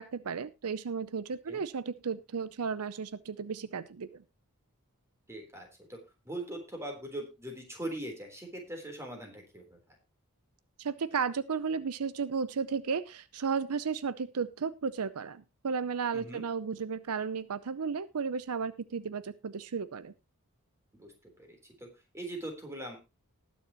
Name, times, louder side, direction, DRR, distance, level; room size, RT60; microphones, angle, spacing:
voice 1, 0.0-4.2 10.8-20.1, right 5 dB, 75° right, 15 dB, 0.6 m, -34 dB
voice 2, 5.3-6.0 6.2-9.8 16.1-16.5 20.9-21.1 21.4-21.9 22.1-23.0, right 1 dB, 10° right, 2 dB, 3.7 m, -41 dB
19.5 x 7.1 x 3.0 m, 0.26 s
head